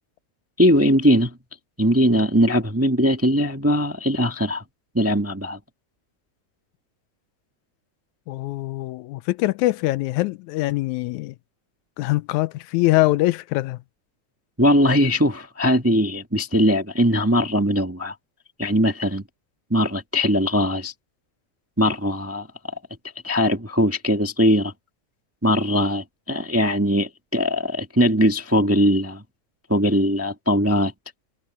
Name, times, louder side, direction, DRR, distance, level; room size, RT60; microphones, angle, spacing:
voice 1, 0.6-1.4 1.8-4.6 4.9-5.6 14.6-18.1 18.6-19.2 19.7-20.9 21.8-22.5 23.2-24.7 25.4-29.2 29.7-30.9, equal, 10° right, 0.8 m, -20 dB
voice 2, 8.3-11.3 12.0-13.8, left 18 dB, 85° left, 2.0 m, -23 dB
omnidirectional pair, 3.3 m